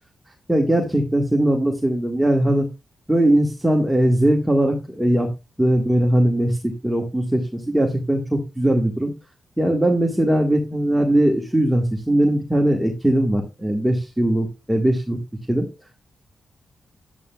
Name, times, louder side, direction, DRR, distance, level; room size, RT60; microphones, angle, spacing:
voice 1, 0.5-2.6 3.1-5.3 5.6-9.1 9.6-15.2 15.5-15.6, right 1 dB, 5° right, 0 dB, 1.5 m, -20 dB
11.0 x 8.3 x 2.3 m, 0.25 s
wide cardioid pair, 100°, 0 cm